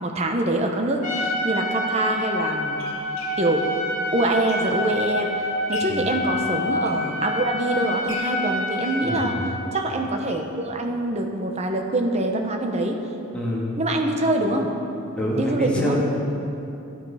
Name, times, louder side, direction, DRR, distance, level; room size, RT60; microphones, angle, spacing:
voice 1, 0.0-2.8 3.4-3.6 4.1-9.3 9.7-13.0 13.8-14.7 15.4-16.0, right 1 dB, 35° right, 3 dB, 0.9 m, -24 dB
Trumpet, 1.0-9.4, left 1 dB, 40° left, 1.9 m, -27 dB
sound 1, 1.2-1.3 2.1-5.0 5.4-6.1 6.6-7.6 8.0-10.6 10.9-11.0 11.3-11.4 11.8-11.9, left 3 dB, 85° left, 2.2 m, -43 dB
voice 2, 9.0-9.3 13.3-13.7 15.2-16.0, equal, 5° left, -6 dB, 1.9 m, -26 dB
12.5 x 9.4 x 4.9 m, 2.9 s
head